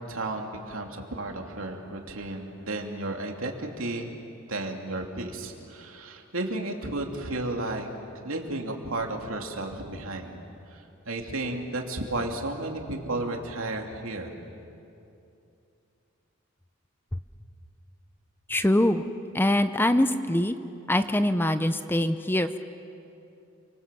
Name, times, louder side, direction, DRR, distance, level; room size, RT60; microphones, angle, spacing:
voice 1, 0.1-4.1 4.5-7.9 8.2-10.4 10.7-14.4, right 2 dB, 75° right, 2 dB, 2.9 m, -33 dB
voice 2, 18.5-19.0 19.3-20.6 20.9-22.6, left 1 dB, 10° left, 10 dB, 0.7 m, -23 dB
29.5 x 24.5 x 7.7 m, 2.7 s
head